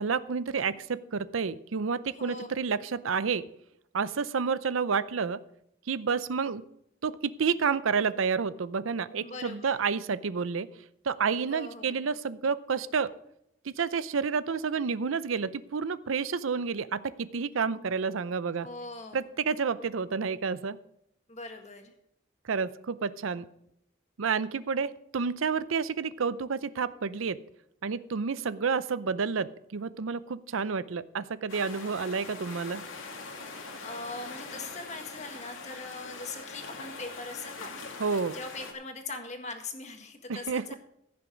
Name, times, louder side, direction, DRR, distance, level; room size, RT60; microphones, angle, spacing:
voice 1, 0.0-3.4 3.9-5.4 5.9-6.6 7.0-10.7 11.0-13.1 13.6-18.7 19.1-20.8 22.4-23.5 24.2-27.4 27.8-32.8 38.0-38.4 40.3-40.7, right 5 dB, 85° right, 16 dB, 0.6 m, -30 dB
voice 2, 9.2-9.8 11.5-12.1 18.6-19.3 21.3-21.9 33.8-38.0 38.3-40.7, left 3 dB, 35° left, 5 dB, 1.7 m, -41 dB
sound 1, 31.5-38.7, left 3 dB, 90° left, 2.3 m, -43 dB
15.5 x 7.0 x 5.1 m, 0.76 s
head